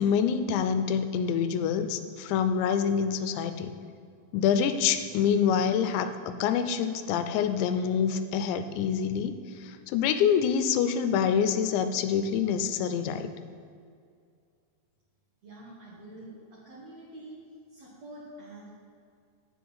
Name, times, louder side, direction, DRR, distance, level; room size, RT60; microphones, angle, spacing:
voice 1, 0.0-3.7 4.3-13.3, left 7 dB, 85° left, 10 dB, 2.8 m, -26 dB
voice 2, 15.4-17.4 17.7-18.8, right 1 dB, 65° right, -6 dB, 1.6 m, -46 dB
7.8 x 7.6 x 5.5 m, 2.3 s
omnidirectional pair, 5.1 m